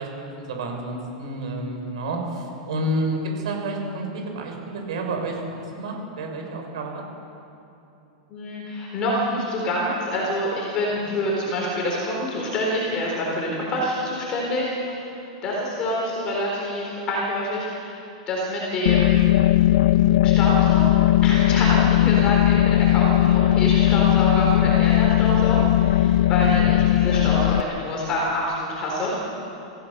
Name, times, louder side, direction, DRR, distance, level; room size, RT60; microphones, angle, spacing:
voice 1, 0.0-4.1 4.3-7.0, right 1 dB, 65° right, 2 dB, 5.6 m, -29 dB
voice 2, 8.3-15.1 15.4-18.0 18.3-19.2 20.2-29.1, left 1 dB, 25° left, -3 dB, 4.0 m, -26 dB
sound 1, 18.9-27.6, left 14 dB, 60° left, 0.4 m, -18 dB
26.0 x 16.0 x 6.7 m, 2.9 s
supercardioid pair, 165°, 4 cm